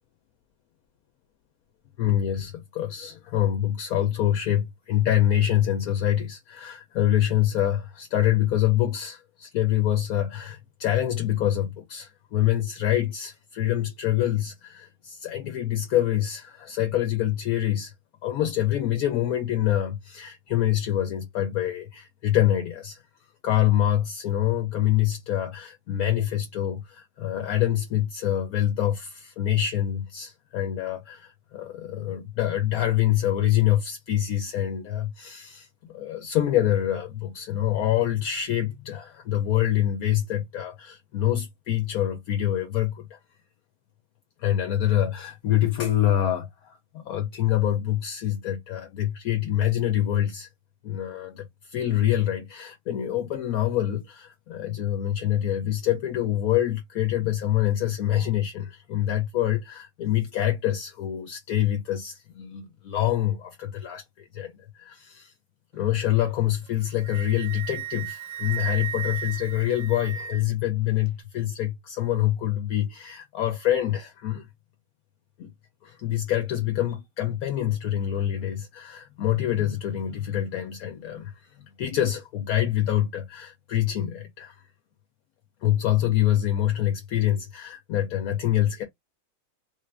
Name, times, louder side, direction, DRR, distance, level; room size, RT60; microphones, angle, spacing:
voice 1, 2.0-17.9 18.2-23.0 23.4-43.2 44.4-50.5 50.8-65.3 65.7-74.5 75.4-75.5 75.8-81.3 81.6-84.6 85.6-88.8, left 12 dB, 70° left, 1.1 m, -26 dB
Wind instrument woodwind instrument, 66.7-70.6, right 10 dB, 65° right, 0.9 m, -35 dB
3.5 x 2.5 x 3.3 m
omnidirectional pair, 1.7 m